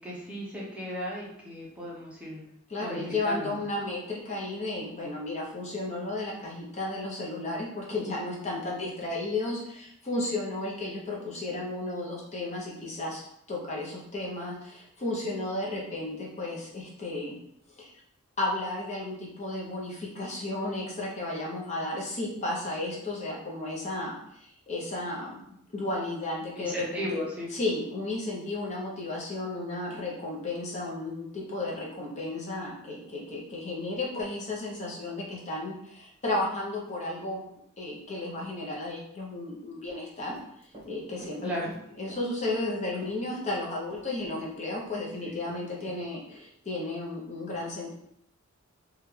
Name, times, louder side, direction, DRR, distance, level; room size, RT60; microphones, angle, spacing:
voice 1, 0.0-2.4 2.8-3.6 8.6-8.7 26.6-27.5 41.4-41.7 45.2-45.3 45.8-45.9, equal, 5° right, -6 dB, 0.7 m, -35 dB
voice 2, 2.7-17.4 17.8-17.9 18.4-25.4 25.7-27.0 27.5-37.4 37.8-41.7 42.0-47.9, left 2 dB, 35° left, -4 dB, 0.7 m, -33 dB
Run, 39.9-40.9 41.2-42.7 43.0-44.5 44.8-44.9, right 1 dB, 25° right, 1.1 m, -49 dB
3.1 x 2.4 x 3.1 m, 0.73 s
head